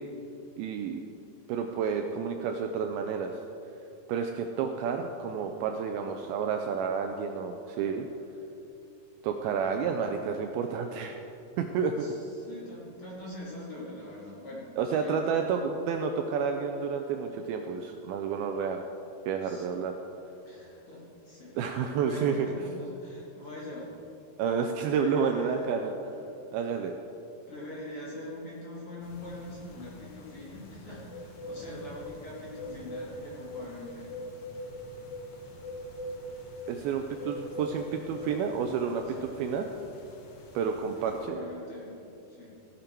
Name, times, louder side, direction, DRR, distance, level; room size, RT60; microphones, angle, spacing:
voice 1, 0.6-1.0 1.5-3.3 4.1-8.1 9.2-11.1 11.6-12.1 14.8-18.8 19.3-19.9 21.6-22.5 24.4-25.9 26.5-26.9 36.7-39.7 40.5-41.4, right 6 dB, 80° right, 4 dB, 2.2 m, -30 dB
voice 2, 12.0-15.2 19.4-19.9 20.4-24.1 24.9-25.9 27.5-34.2 39.1-39.4 41.0-42.6, left 1 dB, 40° left, -6 dB, 2.5 m, -43 dB
sound 1, 29.0-41.3, equal, 65° left, 3.0 m, -43 dB
15.5 x 8.9 x 4.5 m, 2.8 s
omnidirectional pair, 4.8 m